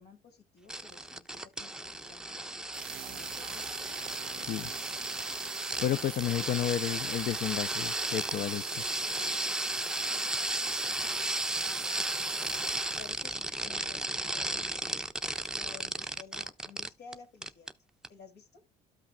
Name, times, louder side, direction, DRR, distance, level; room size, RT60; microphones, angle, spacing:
voice 1, 0.0-2.4 3.0-3.9 12.9-15.0 15.5-17.7 18.1-18.6, left 5 dB, 80° left, 2.9 m, -53 dB
sound 1, 0.7-17.1 17.4-17.7 18.0-18.1, right 1 dB, 5° right, 0.5 m, -34 dB
sound 2, 2.7-13.3, right 15 dB, 65° right, 0.4 m, -44 dB
voice 2, 4.4-4.7 5.8-8.9, left 11 dB, 60° left, 0.4 m, -32 dB
13.0 x 5.8 x 2.2 m
cardioid pair, 110°, 17 cm